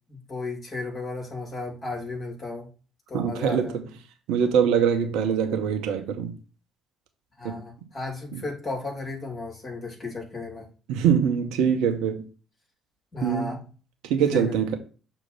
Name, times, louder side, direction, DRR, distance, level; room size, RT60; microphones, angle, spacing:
voice 1, 0.1-2.7 3.1-3.7 7.4-10.7 13.1-13.6 14.3-14.4, left 3 dB, 35° left, 2.8 m, -34 dB
voice 2, 3.1-3.9 4.3-6.3 7.4-7.6 8.3-8.4 10.9-12.2 13.2-13.6 14.0-14.8, right 7 dB, 65° right, 0.8 m, -23 dB
6.4 x 2.8 x 5.5 m
figure-of-eight pair, 50°, 0 cm